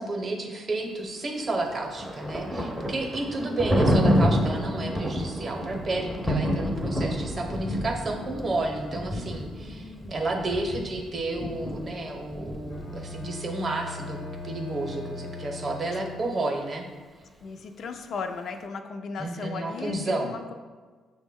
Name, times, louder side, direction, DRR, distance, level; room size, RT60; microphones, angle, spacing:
voice 1, 0.0-14.2 14.4-16.9 19.2-20.3, right 2 dB, 40° right, 3 dB, 0.7 m, -31 dB
Thunder, 1.5-13.3, equal, ahead, 0.5 m, -28 dB
voice 2, 9.6-10.3 17.4-20.5, left 5 dB, 65° left, 6 dB, 0.3 m, -37 dB
Bowed string instrument, 12.7-16.6, left 3 dB, 85° left, 0.8 m, -40 dB
5.8 x 2.1 x 3.5 m, 1.4 s
cardioid pair, 90°, 0 cm